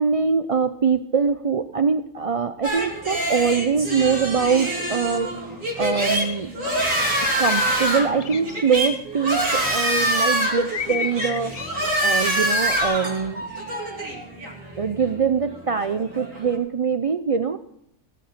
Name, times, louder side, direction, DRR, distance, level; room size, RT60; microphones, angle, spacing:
voice 1, 0.0-6.5 7.4-11.7 12.0-13.5 14.8-17.6, right 5 dB, 50° right, 10 dB, 0.4 m, -23 dB
sound 1, 2.6-16.6, right 1 dB, 80° right, 3.2 m, -25 dB
sound 2, 7.2-7.9 8.2-8.6 10.7-12.0 12.3-12.8, left 6 dB, 45° left, 0.5 m, -32 dB
17.5 x 6.6 x 8.0 m, 0.76 s
omnidirectional pair, 1.3 m